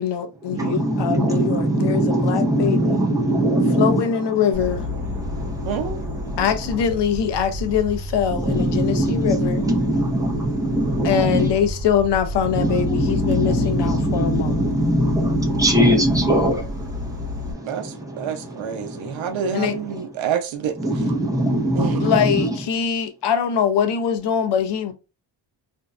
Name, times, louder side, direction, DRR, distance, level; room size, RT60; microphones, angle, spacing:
voice 1, 0.0-3.0 3.8-4.9 6.4-9.6 11.0-14.6 19.5-19.7 22.0-24.9, left 8 dB, 65° left, 0.6 m, -23 dB
voice 2, 0.5-4.0 4.5-4.7 5.0-6.4 8.3-11.5 12.5-16.8 17.1-17.3 17.8-18.2 20.8-22.5, right 1 dB, 10° right, 0.5 m, -21 dB
Insect, 4.5-17.5, left 2 dB, 35° right, 1.1 m, -31 dB
voice 3, 5.6-6.0 17.6-21.0 21.7-22.1, right 7 dB, 85° right, 0.6 m, -28 dB
2.6 x 2.1 x 2.3 m
wide cardioid pair, 145°, 45 cm